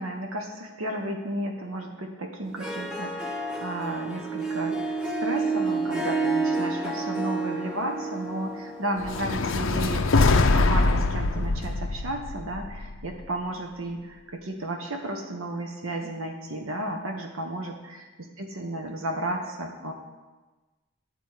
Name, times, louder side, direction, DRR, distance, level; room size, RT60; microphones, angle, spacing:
voice 1, 0.0-18.0 18.4-19.9, right 1 dB, 75° right, 2 dB, 1.1 m, -33 dB
Harp, 2.4-11.0, right 3 dB, 5° right, 0.7 m, -30 dB
sound 1, 9.0-13.3, left 3 dB, 65° left, 0.6 m, -23 dB
10.5 x 5.1 x 8.0 m, 1.2 s
head